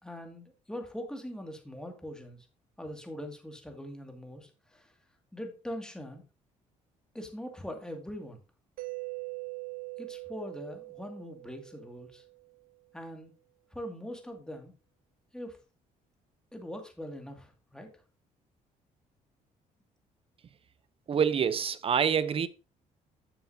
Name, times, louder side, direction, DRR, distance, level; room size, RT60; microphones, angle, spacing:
voice 1, 0.0-2.5 2.8-5.0 5.3-6.2 7.1-8.4 10.0-12.2 12.9-13.3 13.7-14.7 15.3-15.6 16.5-17.9, equal, 5° left, 2.3 m, -42 dB
Mallet percussion, 8.8-12.5, right 31 dB, 80° right, 0.5 m, -42 dB
voice 2, 21.1-22.5, right 7 dB, 40° right, 0.7 m, -26 dB
10.0 x 6.9 x 2.8 m
cardioid pair, 95°, 15 cm